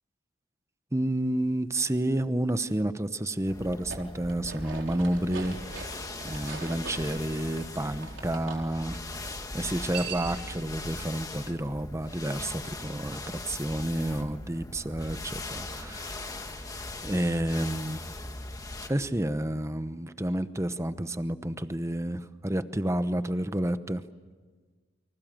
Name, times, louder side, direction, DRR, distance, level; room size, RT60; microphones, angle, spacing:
voice 1, 0.9-5.9 6.2-9.0 9.5-18.0 18.9-24.0, right 1 dB, 15° right, 11 dB, 0.9 m, -30 dB
sound 1, 3.5-18.9, left 2 dB, 20° left, 1.8 m, -40 dB
sound 2, 3.7-8.6 9.6-10.5, right 5 dB, 75° right, 4.3 m, -42 dB
29.0 x 25.0 x 7.6 m, 1.4 s
head